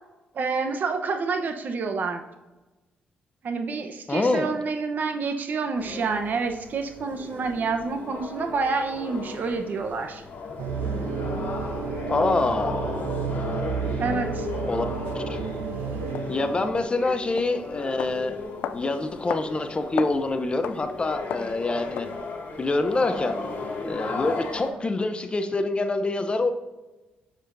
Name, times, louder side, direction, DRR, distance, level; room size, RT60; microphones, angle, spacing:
voice 1, 0.3-2.2 3.4-10.2 14.0-14.5 17.0-17.2, right 4 dB, 55° right, 6 dB, 0.9 m, -28 dB
voice 2, 4.1-4.5 12.0-12.8 14.7-14.9 15.1-15.4 16.3-18.4 18.7-22.1 22.6-23.4 23.8-26.5, left 2 dB, 30° left, 8 dB, 0.7 m, -26 dB
sound 1, 5.8-24.7, left 3 dB, 65° left, 2.0 m, -36 dB
sound 2, 10.6-16.8, right 5 dB, 85° right, 0.6 m, -31 dB
sound 3, 15.0-15.2 16.1-16.3 16.8-16.9 17.4-17.5 18.0-18.2 18.6-18.8 19.3-19.5 19.8-20.2 20.6-20.8 21.3-21.5 22.0-22.1, left 9 dB, 85° left, 0.4 m, -33 dB
7.2 x 6.8 x 2.6 m, 1.1 s
cardioid pair, 75°, 4 cm